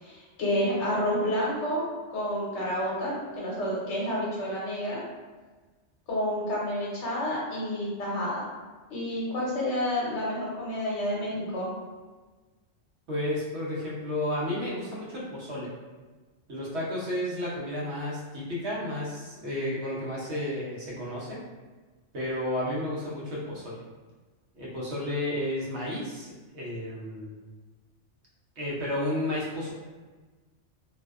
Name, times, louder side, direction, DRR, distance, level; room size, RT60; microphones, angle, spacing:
voice 1, 0.0-1.8 2.1-5.0 6.1-8.5 8.9-11.7, equal, 70° left, -6 dB, 1.0 m, -29 dB
voice 2, 13.1-15.7 16.5-21.4 22.1-23.8 24.5-27.3 28.6-29.7, left 1 dB, 65° right, -6 dB, 1.0 m, -32 dB
2.6 x 2.1 x 2.3 m, 1.3 s
omnidirectional pair, 1.3 m